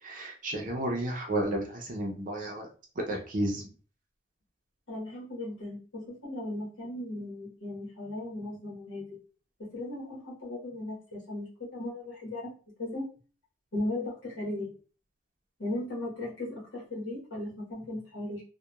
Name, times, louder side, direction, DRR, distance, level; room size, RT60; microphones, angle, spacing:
voice 1, 0.0-2.7 3.1-3.6, right 1 dB, 45° right, 0 dB, 0.5 m, -32 dB
voice 2, 4.9-9.2 9.7-12.5 12.8-13.0 13.7-14.7 15.6-18.4, left 1 dB, 85° left, -5 dB, 1.1 m, -37 dB
2.8 x 2.2 x 2.2 m, 0.38 s
head